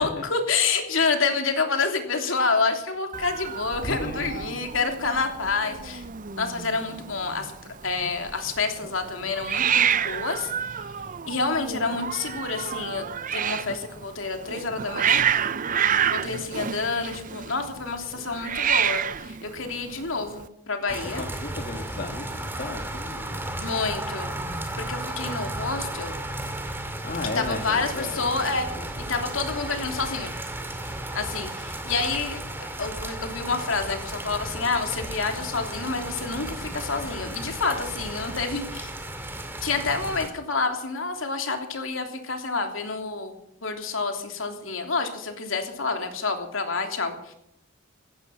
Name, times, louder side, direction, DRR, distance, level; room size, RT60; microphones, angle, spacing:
voice 1, 0.0-6.0 6.4-7.5 7.8-10.8 11.3-15.3 16.1-21.2 23.6-24.3 24.8-26.2 27.3-28.7 29.0-30.3 31.1-32.4 32.8-38.9 39.6-43.3 43.6-47.3, left 4 dB, 70° left, 4 dB, 3.0 m, -28 dB
Hiss, 3.1-20.5, right 8 dB, 40° right, 0.6 m, -29 dB
voice 2, 3.8-4.6 15.9-16.3 21.2-23.5 27.0-28.8, left 2 dB, 45° left, 1 dB, 2.0 m, -35 dB
sound 1, 20.9-40.3, right 1 dB, 10° right, 2.2 m, -34 dB
17.0 x 14.0 x 5.8 m, 0.74 s
head